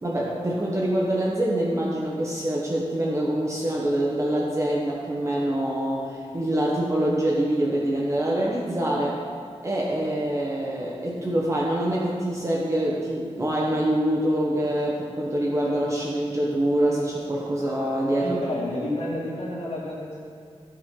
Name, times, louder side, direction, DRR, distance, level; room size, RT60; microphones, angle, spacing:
voice 1, 0.0-9.2 9.6-18.4, right 1 dB, 30° right, -3 dB, 1.1 m, -25 dB
voice 2, 18.2-20.2, left 1 dB, 70° left, -8 dB, 2.8 m, -30 dB
14.5 x 6.6 x 3.9 m, 2.2 s
wide cardioid pair, 130°, 11 cm